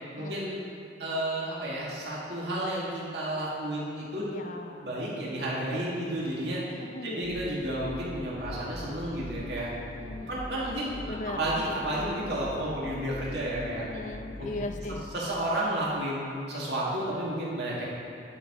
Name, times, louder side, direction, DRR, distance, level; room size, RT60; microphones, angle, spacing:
voice 1, 0.1-0.6 1.0-4.2 4.8-9.7 10.3-13.8 14.4-14.7 15.1-17.9, right 1 dB, 65° right, -6 dB, 2.0 m, -32 dB
voice 2, 4.3-4.9 6.8-7.4 9.9-10.4 11.0-11.5 13.8-15.1, left 2 dB, 45° left, 6 dB, 0.5 m, -39 dB
sound 1, 7.2-15.5, left 2 dB, 75° left, 1.7 m, -42 dB
10.0 x 4.8 x 4.9 m, 2.7 s
head